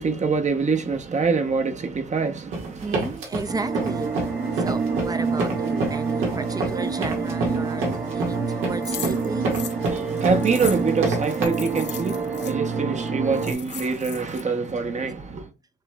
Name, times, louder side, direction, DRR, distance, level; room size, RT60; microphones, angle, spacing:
voice 1, 0.0-3.2 9.9-15.5, right 4 dB, 35° right, 0.9 m, -25 dB
sound 1, 2.5-11.4, right 2 dB, 85° right, 1.9 m, -28 dB
voice 2, 2.8-4.1 4.6-9.5, right 3 dB, 20° right, 0.6 m, -33 dB
sound 2, 3.5-13.5, right 4 dB, 60° right, 1.3 m, -27 dB
sound 3, 8.8-12.5 13.1-13.2 13.3-14.4, left 10 dB, 60° left, 0.7 m, -37 dB
6.6 x 3.1 x 2.3 m
cardioid pair, 90°, 20 cm